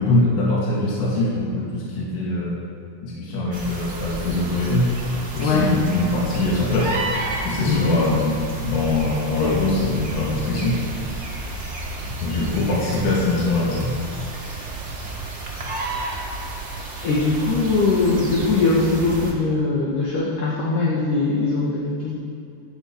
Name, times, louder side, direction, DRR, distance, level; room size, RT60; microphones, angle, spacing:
voice 1, 0.0-2.6 3.0-4.9 5.3-7.0 7.4-8.4 8.6-10.8 12.2-14.0, left 2 dB, 90° left, -5 dB, 4.2 m, -22 dB
sound 1, 3.5-19.3, right 2 dB, 50° right, 0.8 m, -31 dB
voice 2, 5.4-5.7 7.7-7.9 9.4-9.6 17.0-22.1, left 3 dB, 60° left, -4 dB, 2.8 m, -21 dB
14.5 x 13.5 x 4.7 m, 2.5 s
omnidirectional pair, 4.7 m